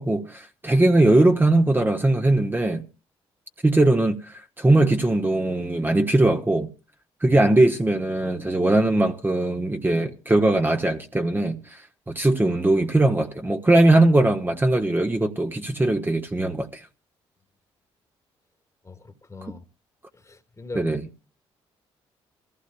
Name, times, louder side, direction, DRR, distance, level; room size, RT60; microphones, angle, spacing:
voice 1, 0.0-2.8 3.6-6.7 7.2-11.8 12.1-16.8 20.7-21.0, right 2 dB, 15° right, 1.2 m, -20 dB
voice 2, 18.8-19.6 20.1-20.9, left 3 dB, 25° left, 1.7 m, -40 dB
26.5 x 15.0 x 2.3 m
supercardioid pair, 55°, 12 cm